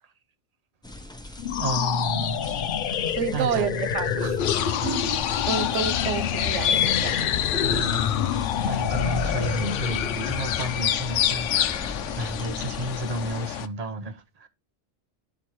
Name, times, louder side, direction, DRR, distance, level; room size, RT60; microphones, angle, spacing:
sound 1, 0.8-13.4, left 2 dB, 5° left, 0.6 m, -39 dB
voice 1, 1.3-4.5 4.8-5.0 7.7-8.2 8.7-14.5, right 1 dB, 40° right, 0.8 m, -32 dB
sound 2, 1.4-10.9, left 8 dB, 60° left, 0.6 m, -28 dB
voice 2, 3.1-4.4 4.8-5.1 5.5-7.3, right 7 dB, 85° right, 1.0 m, -29 dB
sound 3, 4.4-13.7, left 10 dB, 90° left, 0.9 m, -28 dB
12.0 x 4.3 x 3.1 m
omnidirectional pair, 1.2 m